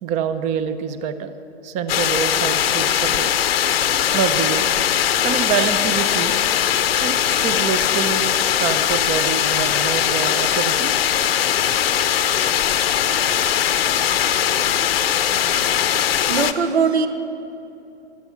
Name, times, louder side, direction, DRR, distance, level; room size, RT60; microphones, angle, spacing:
voice 1, 0.0-1.3 1.6-3.3 4.1-4.6 5.2-6.4 7.0-10.9, right 7 dB, 20° right, 12 dB, 0.7 m, -26 dB
sound 1, 1.9-16.5, left 10 dB, 60° left, 0.9 m, -20 dB
voice 2, 15.9-17.1, right 5 dB, 75° right, 9 dB, 1.3 m, -21 dB
15.5 x 12.0 x 5.9 m, 2.8 s
hypercardioid pair, 125°, 33 cm